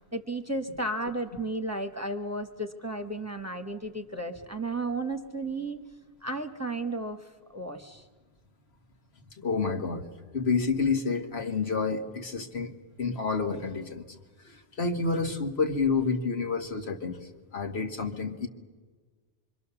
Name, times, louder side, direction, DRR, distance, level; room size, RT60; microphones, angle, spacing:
voice 1, 0.1-5.8 6.2-8.0, right 2 dB, 15° right, 5 dB, 1.2 m, -33 dB
voice 2, 9.4-10.1 10.3-14.1 14.5-17.2 17.5-18.5, left 4 dB, 80° left, 4 dB, 1.9 m, -29 dB
25.5 x 24.5 x 7.0 m, 1.4 s
omnidirectional pair, 1.1 m